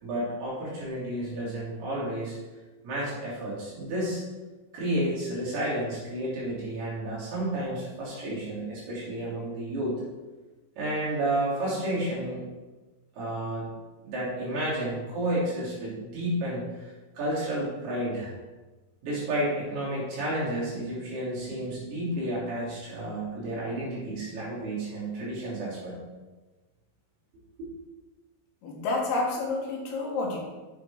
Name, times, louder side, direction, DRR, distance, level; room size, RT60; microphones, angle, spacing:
voice 1, 0.0-2.4 2.8-4.2 4.7-10.0 10.8-12.5 13.2-13.7 14.0-16.6 17.1-18.3 19.0-26.0 27.6-27.7, right 1 dB, 70° right, -8 dB, 4.9 m, -31 dB
voice 2, 28.6-30.4, left 3 dB, 75° left, -1 dB, 3.2 m, -29 dB
8.2 x 7.5 x 3.6 m, 1.2 s
omnidirectional pair, 4.7 m